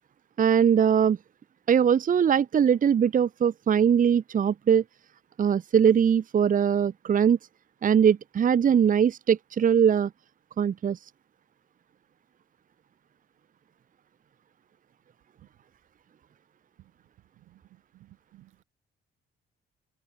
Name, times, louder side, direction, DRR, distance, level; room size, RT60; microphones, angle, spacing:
voice 1, 0.4-1.2 1.7-4.8 5.4-7.4 7.8-10.1 10.6-11.0, right 8 dB, 40° right, 0.8 m, -21 dB
voice 2, 17.9-18.6, right 15 dB, 90° right, 3.2 m, -56 dB
open air
cardioid pair, 90°, 20 cm